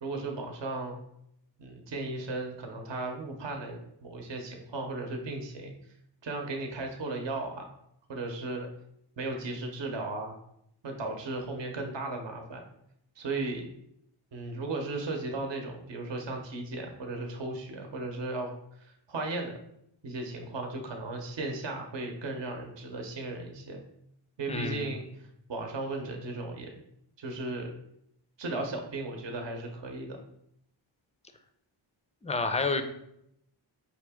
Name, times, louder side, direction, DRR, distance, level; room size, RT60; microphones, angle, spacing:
voice 1, 0.0-1.0 1.6-5.7 6.2-7.7 8.1-8.7 9.2-10.4 10.8-12.6 13.2-13.6 14.3-18.5 18.8-19.6 20.0-23.8 24.4-25.0 25.5-26.7 27.2-27.7 28.4-30.2, right 2 dB, 60° right, 3 dB, 0.9 m, -36 dB
voice 2, 24.5-24.9 32.2-32.8, left 3 dB, 15° left, 8 dB, 0.4 m, -29 dB
5.0 x 2.8 x 3.5 m, 0.76 s
cardioid pair, 70°, 48 cm